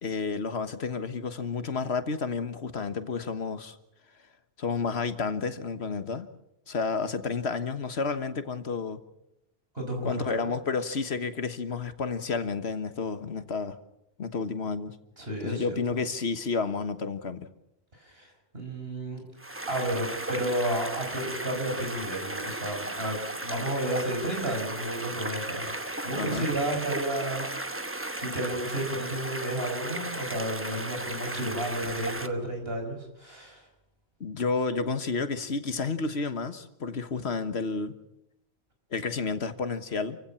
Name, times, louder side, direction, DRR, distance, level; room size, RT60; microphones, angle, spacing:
voice 1, 0.0-3.8 4.6-6.3 6.7-9.0 10.0-13.8 14.2-15.0 15.4-17.5 26.1-26.5 34.2-38.0 38.9-40.2, left 4 dB, 80° left, 1.7 m, -31 dB
voice 2, 9.7-10.5 15.2-15.8 18.0-19.2 19.7-27.5 28.2-33.6, right 1 dB, 65° right, 5.7 m, -32 dB
sound 1, 19.4-32.3, right 1 dB, 15° right, 1.0 m, -35 dB
28.5 x 16.0 x 7.1 m
omnidirectional pair, 1.1 m